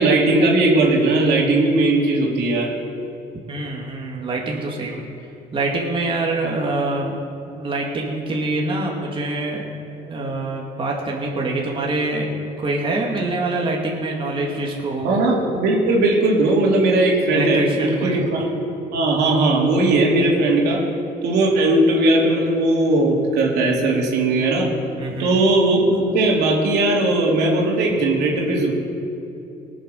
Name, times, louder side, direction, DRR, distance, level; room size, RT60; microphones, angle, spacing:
voice 1, 0.0-2.7 15.0-18.5 18.9-20.8 21.2-24.7 25.2-28.7, right 2 dB, 75° right, -2 dB, 2.9 m, -18 dB
voice 2, 3.5-5.0 5.5-7.1 7.5-9.7 10.1-15.2 17.3-18.2 25.0-25.4, right 2 dB, 30° right, -2 dB, 2.1 m, -25 dB
19.0 x 7.1 x 6.5 m, 2.9 s
cardioid pair, 110°, 17 cm